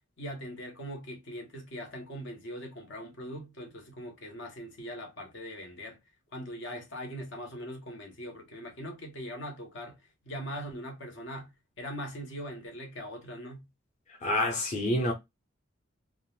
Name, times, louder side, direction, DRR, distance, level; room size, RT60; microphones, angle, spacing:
voice 1, 0.2-6.0 6.3-13.7, equal, 70° left, 1.1 m, -41 dB
voice 2, 14.2-15.1, left 1 dB, 40° left, 0.8 m, -27 dB
3.6 x 2.1 x 2.3 m
head